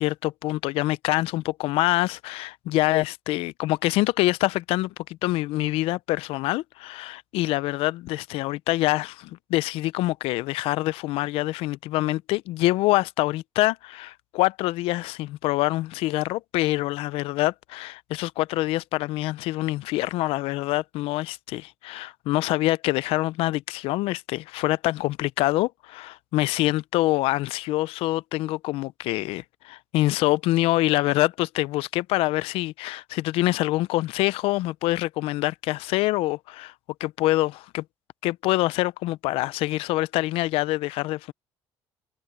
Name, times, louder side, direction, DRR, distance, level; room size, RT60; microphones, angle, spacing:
voice 1, 0.0-36.7 37.0-37.8 38.2-41.3, left 18 dB, 85° left, 0.5 m, -25 dB
cardioid pair, 145°, 9 cm